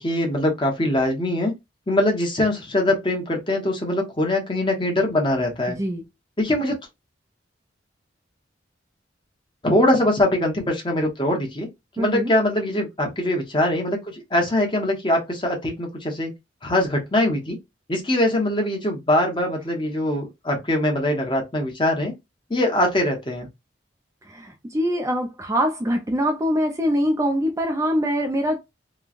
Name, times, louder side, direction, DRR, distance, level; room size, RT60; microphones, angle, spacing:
voice 1, 0.0-1.5 1.9-5.8 6.4-6.8 9.6-11.7 12.0-16.3 16.6-17.6 17.9-22.1 22.5-23.5, left 1 dB, 25° left, 0.9 m, -22 dB
voice 2, 12.0-12.3 24.3-28.6, equal, 15° right, 0.4 m, -23 dB
3.0 x 2.2 x 2.4 m
head